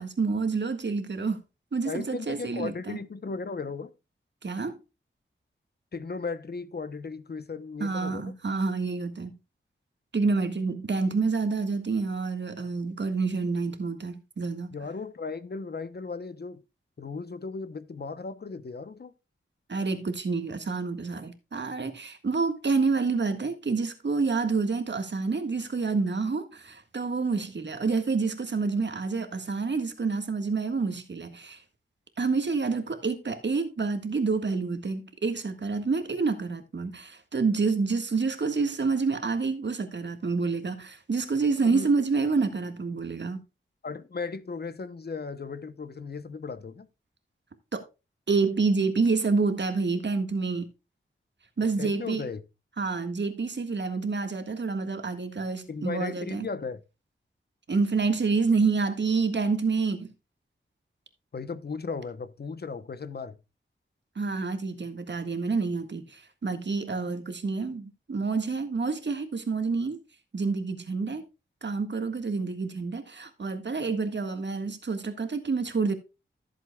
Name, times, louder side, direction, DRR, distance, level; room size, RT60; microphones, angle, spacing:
voice 1, 0.0-1.4 1.7-3.0 4.4-4.8 7.8-9.3 10.1-14.7 19.7-31.6 32.2-43.4 47.7-47.8 48.3-50.7 51.6-52.2 52.8-56.5 57.7-60.1 64.1-70.0 70.3-71.2 71.6-75.9, right 4 dB, 60° right, 1.7 m, -28 dB
voice 2, 1.8-3.9 5.9-8.3 14.7-16.6 17.0-19.1 41.6-41.9 43.8-46.9 51.6-52.4 55.7-56.8 61.3-63.4, left 4 dB, 50° left, 0.8 m, -36 dB
14.5 x 7.6 x 2.3 m
wide cardioid pair, 115°, 21 cm